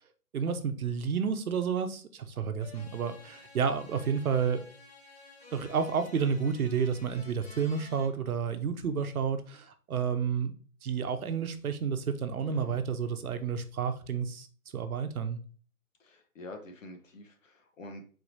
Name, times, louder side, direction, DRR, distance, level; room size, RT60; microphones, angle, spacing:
voice 1, 0.3-4.6 5.5-10.5 10.8-14.5 14.7-15.4, right 6 dB, 70° right, 0.9 m, -30 dB
sound 1, 2.6-8.1, left 4 dB, 40° left, 1.5 m, -52 dB
voice 2, 12.4-12.9 16.0-18.0, left 1 dB, 60° left, 1.3 m, -47 dB
4.6 x 4.1 x 2.7 m
hypercardioid pair, 160°, 44 cm